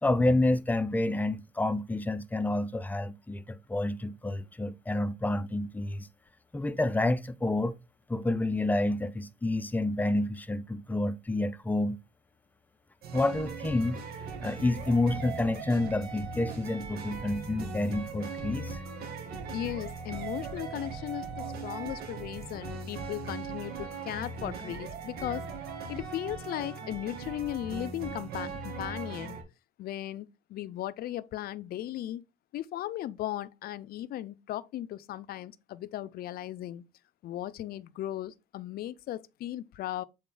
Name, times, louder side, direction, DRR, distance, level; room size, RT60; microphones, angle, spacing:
voice 1, 0.0-6.1 6.5-7.8 8.1-12.0 13.1-18.8, left 2 dB, 10° left, 0.6 m, -29 dB
sound 1, 13.0-29.4, right 4 dB, 70° right, 2.4 m, -39 dB
voice 2, 19.5-25.4 25.9-29.4 29.8-32.2 32.5-36.8 37.2-40.0, left 13 dB, 65° left, 0.6 m, -37 dB
7.5 x 4.2 x 3.9 m
cardioid pair, 110°, 17 cm